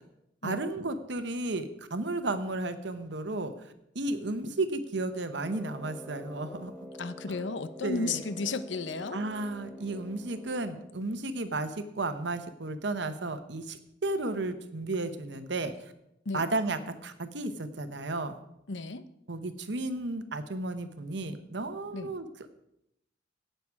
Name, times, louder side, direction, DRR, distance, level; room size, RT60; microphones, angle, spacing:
voice 1, 0.4-3.5 3.9-6.7 7.3-7.4 7.8-8.2 9.1-15.7 16.3-18.3 19.3-22.3, right 2 dB, 70° right, 10 dB, 1.1 m, -33 dB
Brass instrument, 5.4-11.0, left 1 dB, ahead, 0.8 m, -46 dB
voice 2, 7.0-9.2 16.3-16.4 18.7-19.0 21.9-22.1, left 3 dB, 70° left, 13 dB, 0.8 m, -33 dB
17.0 x 6.7 x 4.8 m, 0.82 s
head